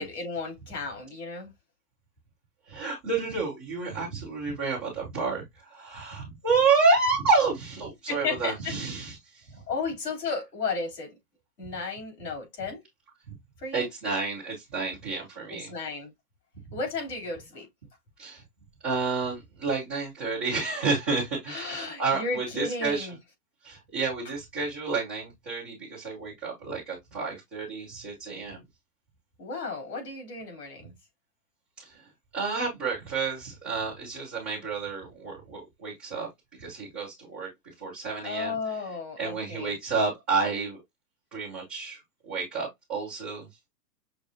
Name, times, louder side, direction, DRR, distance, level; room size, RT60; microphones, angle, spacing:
voice 1, 0.0-1.5 8.1-8.7 9.7-11.1 11.6-12.8 13.6-13.9 15.5-16.1 16.7-17.7 21.5-23.1 29.4-30.9 38.2-39.7, left 4 dB, 85° left, 3.2 m, -34 dB
voice 2, 2.7-9.4 13.7-15.7 16.7-16.8 18.2-18.4 18.8-23.1 23.6-28.6 31.8-32.1 32.3-36.3 36.6-37.5 37.8-38.8 39.2-40.8 41.3-43.5, right 4 dB, 10° right, 0.4 m, -29 dB
6.2 x 2.5 x 2.6 m
hypercardioid pair, 150°, 47 cm